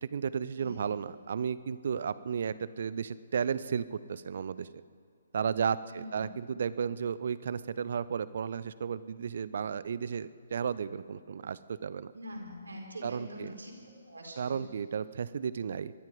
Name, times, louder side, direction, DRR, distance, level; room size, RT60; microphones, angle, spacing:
voice 1, 0.0-4.7 5.3-12.1 13.0-13.5 14.4-15.9, right 7 dB, 55° right, 17 dB, 0.6 m, -33 dB
voice 2, 0.6-0.9 5.9-6.2 12.1-13.7 14.1-14.6, equal, 75° right, -1 dB, 4.2 m, -44 dB
22.5 x 12.0 x 5.3 m, 2.3 s
figure-of-eight pair, 135°, 0 cm